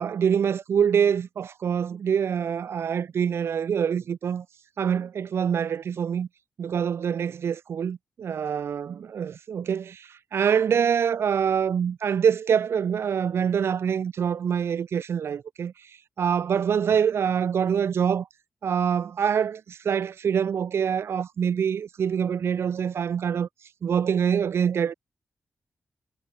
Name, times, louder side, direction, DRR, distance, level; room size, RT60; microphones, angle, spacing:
voice 1, 0.0-4.5 4.8-6.3 6.6-15.7 16.2-18.3 18.6-23.5 23.8-24.9, right 7 dB, 75° right, 0.9 m, -25 dB
wide cardioid pair, 135°, 4 cm